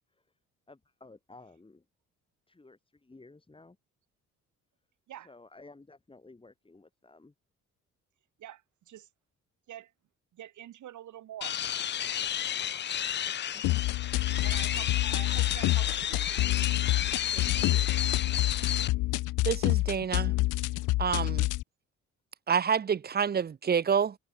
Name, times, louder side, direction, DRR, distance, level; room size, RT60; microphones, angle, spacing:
voice 1, 0.7-1.8 2.5-3.8 5.2-7.3 13.2-13.6 17.3-17.9, left 3 dB, 15° left, 3.0 m, -54 dB
voice 2, 10.3-11.6 14.4-16.5, right 12 dB, 75° right, 4.1 m, -46 dB
sound 1, 11.4-18.9, left 10 dB, 35° left, 0.5 m, -32 dB
sound 2, 13.6-21.6, left 19 dB, 85° left, 0.6 m, -28 dB
voice 3, 19.4-20.3 21.0-21.5 22.5-24.2, right 7 dB, 30° right, 0.7 m, -28 dB
cardioid pair, 90°, 30 cm